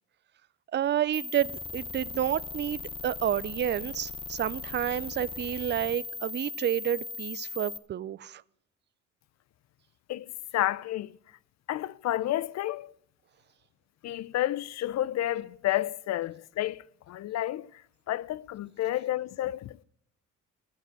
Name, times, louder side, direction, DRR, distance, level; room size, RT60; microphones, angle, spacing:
voice 1, 0.7-8.4, right 10 dB, 35° right, 0.4 m, -30 dB
sound 1, 1.1-7.8, left 4 dB, 20° left, 0.9 m, -39 dB
voice 2, 10.5-11.1 11.7-12.9 14.0-17.7 18.1-19.8, left 14 dB, 60° left, 0.5 m, -30 dB
16.0 x 5.8 x 9.6 m
cardioid pair, 90°, 30 cm